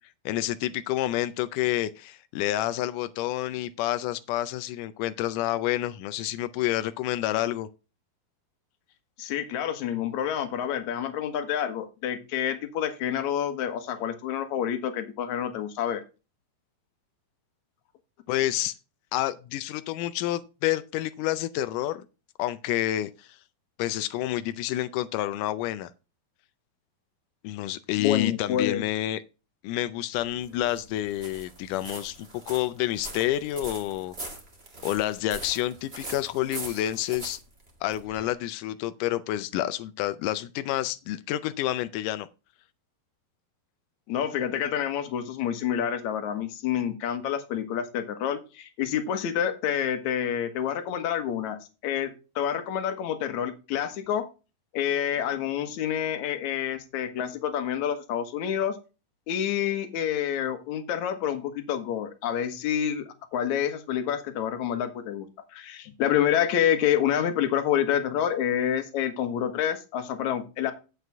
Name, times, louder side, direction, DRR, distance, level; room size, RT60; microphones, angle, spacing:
voice 1, 0.3-7.7 18.3-18.7 19.1-22.0 22.4-23.4 23.8-25.9 27.4-29.2 29.6-34.1 34.8-37.4 37.8-42.3, left 14 dB, 90° left, 1.8 m, -29 dB
voice 2, 9.2-16.0 28.0-28.8 44.1-54.3 54.7-58.8 59.3-65.3 65.5-70.7, left 9 dB, 60° left, 2.2 m, -28 dB
sound 1, 30.1-38.3, right 2 dB, 25° right, 1.3 m, -42 dB
9.1 x 8.3 x 3.4 m
omnidirectional pair, 4.4 m